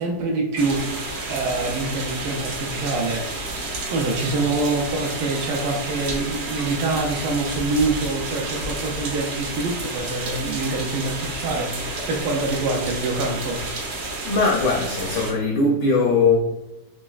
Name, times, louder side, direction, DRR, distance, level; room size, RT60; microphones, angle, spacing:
voice 1, 0.0-3.5 3.9-13.6, right 3 dB, 80° right, 1 dB, 1.3 m, -25 dB
sound 1, 0.6-15.3, right 2 dB, 60° right, 1.1 m, -31 dB
voice 2, 14.2-16.4, left 3 dB, 80° left, -1 dB, 0.9 m, -20 dB
4.1 x 3.1 x 2.3 m, 0.99 s
omnidirectional pair, 2.4 m